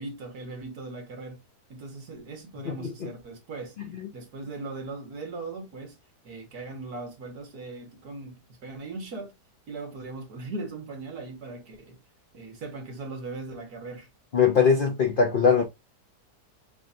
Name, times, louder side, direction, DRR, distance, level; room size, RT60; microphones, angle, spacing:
voice 1, 0.0-1.4 1.7-3.8 4.1-6.0 6.2-9.3 9.7-12.0 12.3-14.1, right 3 dB, 65° right, 2.0 m, -39 dB
voice 2, 2.7-3.1 3.9-4.1 14.3-15.6, left 6 dB, 65° left, 0.5 m, -22 dB
6.7 x 2.9 x 2.7 m
omnidirectional pair, 1.8 m